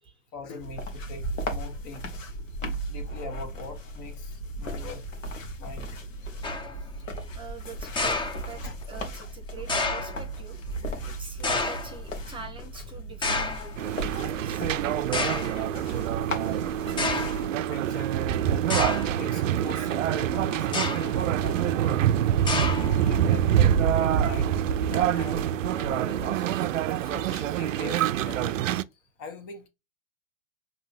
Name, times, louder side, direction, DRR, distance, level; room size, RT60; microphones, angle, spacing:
voice 1, 0.3-2.0 2.9-5.0 5.6-5.9 6.2-6.5 7.0-7.1 8.6-8.7 15.5-15.7 16.9-17.0 17.7-18.3 19.1-22.1 22.8-25.4 25.7-26.4 27.0-28.7 29.2-29.7, left 4 dB, 40° left, 1.3 m, -42 dB
sound 1, 0.6-17.5, right 1 dB, 80° left, 1.3 m, -36 dB
sound 2, 6.4-6.8 8.0-8.9 9.7-10.2 11.4-12.0 13.2-13.8 14.6-14.7 15.1-15.6 16.4-16.5 17.0-17.5 18.7-19.2 20.6-21.2 22.5-23.1, left 3 dB, 10° left, 0.7 m, -29 dB
voice 2, 7.3-8.6 8.9-10.6 11.1-16.0, right 4 dB, 15° right, 1.0 m, -44 dB
sound 3, 13.8-28.8, right 10 dB, 75° right, 0.5 m, -25 dB
5.2 x 2.9 x 2.5 m
hypercardioid pair, 105°, 39 cm